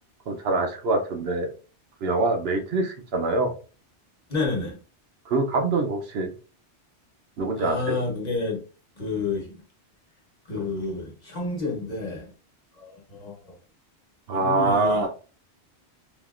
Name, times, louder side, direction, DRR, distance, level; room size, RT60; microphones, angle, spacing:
voice 1, 0.3-1.5 2.0-3.5 5.3-6.3 7.4-8.0 14.3-15.1, right 2 dB, 65° right, 0.9 m, -24 dB
voice 2, 4.3-4.8 7.6-8.6 9.0-9.6 10.4-12.3 12.7-13.6 14.3-15.1, left 3 dB, 40° left, 1.1 m, -30 dB
3.5 x 2.5 x 2.4 m
omnidirectional pair, 1.2 m